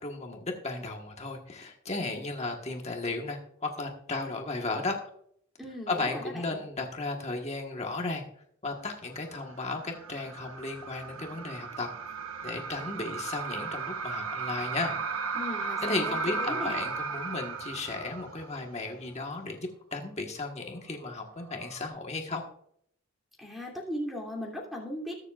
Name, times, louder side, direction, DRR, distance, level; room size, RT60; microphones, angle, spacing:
voice 1, 0.0-5.0 5.9-8.2 8.6-11.9 12.4-15.0 15.8-22.4, left 3 dB, 30° left, 2 dB, 1.4 m, -35 dB
voice 2, 5.6-6.6 15.3-16.8 23.4-25.1, equal, ahead, -1 dB, 2.8 m, -38 dB
sound 1, 9.2-18.8 19.1-19.2 21.3-21.9, right 5 dB, 80° right, 1.1 m, -36 dB
21.5 x 7.3 x 2.4 m, 0.67 s
head